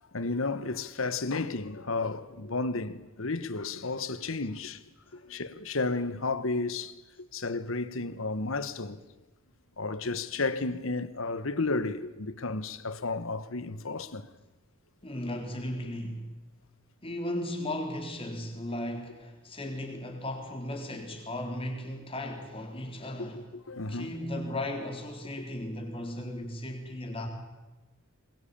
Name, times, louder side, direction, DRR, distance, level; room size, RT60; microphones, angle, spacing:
voice 1, 0.1-4.8 5.1-6.9 7.3-9.0 9.8-14.3 23.2-24.1, left 3 dB, 65° left, 1.2 m, -32 dB
voice 2, 15.0-16.4 17.0-23.4 23.9-27.3, left 1 dB, 25° left, 4.0 m, -36 dB
22.5 x 22.0 x 8.7 m
head